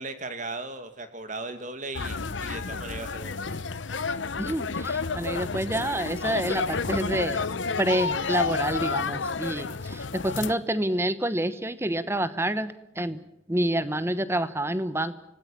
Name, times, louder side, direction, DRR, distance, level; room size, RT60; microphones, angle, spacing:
voice 1, 0.0-3.5, right 3 dB, 40° right, 9 dB, 2.3 m, -37 dB
sound 1, 1.9-10.5, left 4 dB, 70° left, 1.0 m, -30 dB
voice 2, 4.4-7.5 7.8-13.2 13.5-15.1, right 1 dB, 15° right, 14 dB, 1.0 m, -28 dB
26.0 x 18.0 x 8.6 m, 0.81 s
head